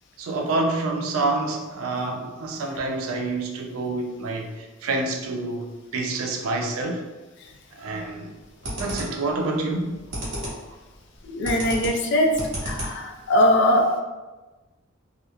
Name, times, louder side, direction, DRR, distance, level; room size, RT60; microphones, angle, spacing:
voice 1, 0.2-7.0 7.8-8.3 8.8-9.9, right 2 dB, 85° right, 3 dB, 0.4 m, -27 dB
sound 1, 8.0-8.2 8.6-9.3 9.7-10.7 11.0-13.2, right 1 dB, 60° right, 1.1 m, -32 dB
voice 2, 11.2-12.3 12.6-14.0, left 1 dB, 55° left, 2 dB, 0.4 m, -21 dB
2.8 x 2.0 x 2.3 m, 1.2 s
head